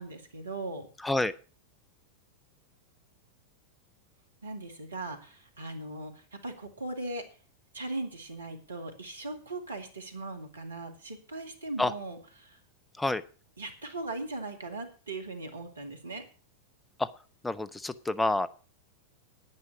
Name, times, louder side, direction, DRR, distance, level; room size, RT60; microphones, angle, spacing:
voice 1, 0.0-0.9 4.4-7.2 7.7-12.6 13.6-16.2, right 2 dB, 75° right, 5 dB, 2.2 m, -39 dB
voice 2, 1.0-1.3 11.8-11.9 13.0-13.2 17.0-17.1 17.4-18.5, left 2 dB, 10° left, 14 dB, 0.7 m, -28 dB
9.8 x 9.6 x 6.1 m, 0.38 s
figure-of-eight pair, 90°, 0 cm